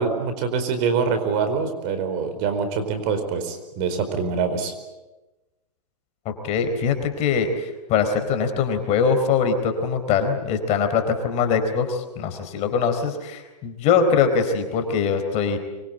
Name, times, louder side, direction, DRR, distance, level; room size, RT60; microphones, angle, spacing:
voice 1, 0.0-4.7, right 5 dB, 40° right, 8 dB, 4.6 m, -24 dB
voice 2, 6.3-15.6, left 6 dB, 35° left, 7 dB, 4.2 m, -22 dB
25.0 x 23.0 x 9.2 m, 1.1 s
hypercardioid pair, 130°, 20 cm